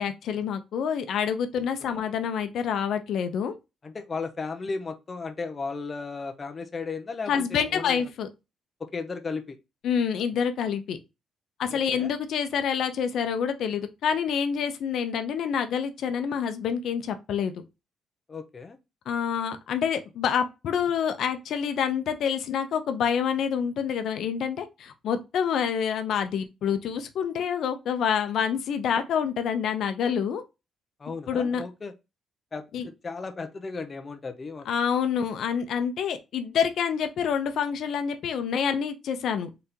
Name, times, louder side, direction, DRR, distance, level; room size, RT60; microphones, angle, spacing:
voice 1, 0.0-3.5 7.3-8.3 9.8-11.0 11.6-17.5 19.1-30.4 31.3-31.6 32.7-32.9 34.7-39.5, left 7 dB, 70° left, 0.6 m, -27 dB
voice 2, 3.8-8.0 8.8-9.6 11.7-12.1 18.3-18.8 31.0-31.9 32.5-34.7, left 4 dB, 30° left, 0.6 m, -35 dB
3.9 x 3.6 x 2.8 m
cardioid pair, 130°, 0 cm